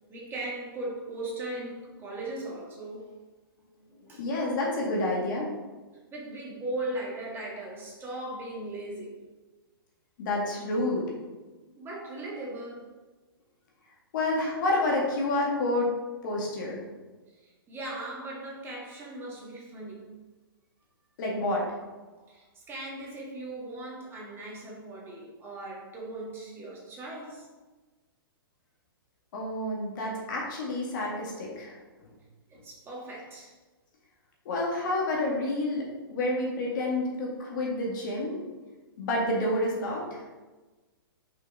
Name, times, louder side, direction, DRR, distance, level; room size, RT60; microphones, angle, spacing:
voice 1, 0.1-3.1 4.1-4.2 6.1-9.2 11.8-12.9 17.3-20.1 22.1-27.5 32.5-33.5, right 2 dB, 20° right, -3 dB, 1.7 m, -38 dB
voice 2, 4.2-5.5 10.2-11.1 14.1-15.9 16.2-16.8 21.2-21.8 29.3-31.8 34.5-38.4 39.0-40.2, left 2 dB, 55° left, -2 dB, 1.9 m, -29 dB
5.6 x 4.7 x 3.6 m, 1.2 s
hypercardioid pair, 130°, 13 cm